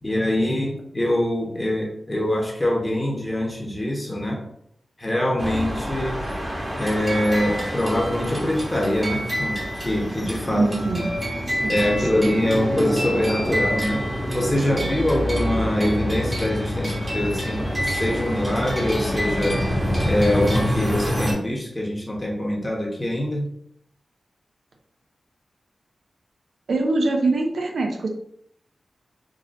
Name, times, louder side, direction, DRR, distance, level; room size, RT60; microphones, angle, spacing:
voice 1, 0.0-4.4 5.0-6.2 6.8-10.7 11.7-14.1 14.3-19.6 20.0-23.5, left 1 dB, 20° left, -1 dB, 1.1 m, -24 dB
sound 1, 5.4-21.3, equal, 20° right, 1.1 m, -26 dB
voice 2, 10.5-11.1 11.5-12.4 14.7-15.0 26.7-28.1, right 2 dB, 75° right, 2 dB, 0.5 m, -25 dB
3.8 x 2.6 x 2.7 m, 0.70 s
cardioid pair, 60°, 0 cm